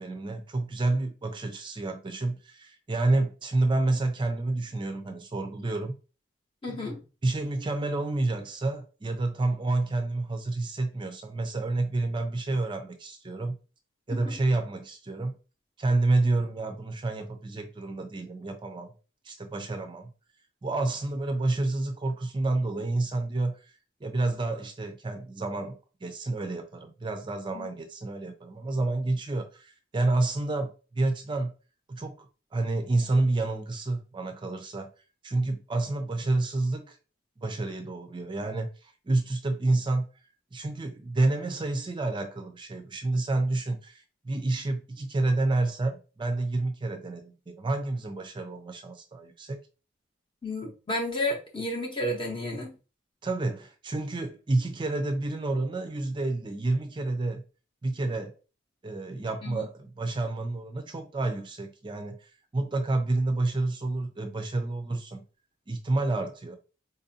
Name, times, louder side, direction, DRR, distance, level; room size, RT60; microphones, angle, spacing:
voice 1, 0.0-5.9 6.7-6.8 7.2-13.6 14.1-15.4 15.8-18.9 19.2-20.1 20.6-23.8 24.0-31.5 31.9-32.3 32.5-34.9 35.2-37.0 37.4-40.1 40.5-49.6 53.2-57.4 57.8-58.3 58.8-65.2 65.7-66.6, right 2 dB, 25° right, 0.4 m, -29 dB
voice 2, 6.6-7.0 14.1-14.3 27.5-27.7 50.4-52.7 59.4-59.7, left 1 dB, 25° left, 0.7 m, -32 dB
4.0 x 2.6 x 2.6 m
head